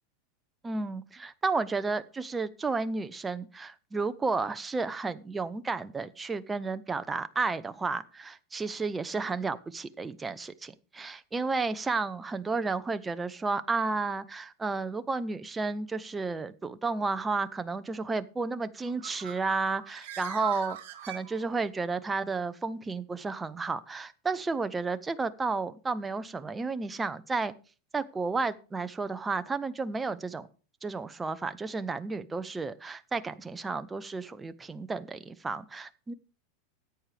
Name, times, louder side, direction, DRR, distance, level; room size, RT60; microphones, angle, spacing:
voice 1, 0.6-20.8 21.0-27.5 27.9-30.5 30.8-36.1, right 4 dB, 15° right, 12 dB, 0.7 m, -32 dB
Bird, 18.8-21.8, right 12 dB, 70° right, 1.6 m, -41 dB
13.5 x 9.0 x 3.4 m, 0.36 s
hypercardioid pair, 115°, 0 cm